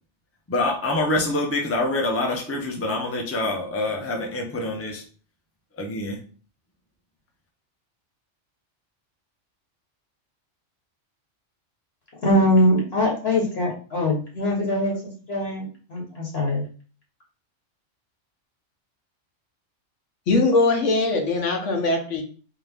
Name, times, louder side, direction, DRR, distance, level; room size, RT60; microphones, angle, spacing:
voice 1, 0.5-5.0 5.8-6.2, left 2 dB, 15° left, 1 dB, 0.6 m, -26 dB
voice 2, 12.2-16.7, left 1 dB, 55° left, -1 dB, 1.3 m, -22 dB
voice 3, 20.3-22.2, left 3 dB, 80° left, 3 dB, 1.3 m, -21 dB
3.7 x 2.8 x 3.5 m, 0.40 s
omnidirectional pair, 1.3 m